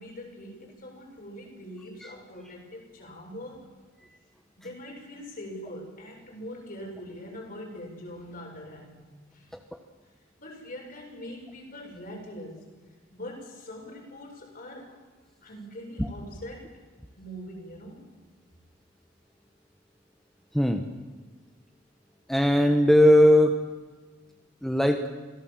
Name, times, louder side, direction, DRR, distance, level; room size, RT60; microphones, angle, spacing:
voice 1, 0.0-3.7 4.6-8.9 9.3-9.5 10.4-12.6 13.1-15.0 15.4-16.7 17.2-18.1, equal, 50° left, 0 dB, 7.4 m, -42 dB
voice 2, 22.3-23.5 24.6-25.1, equal, ahead, 5 dB, 1.2 m, -19 dB
26.0 x 17.5 x 7.7 m, 1.3 s
head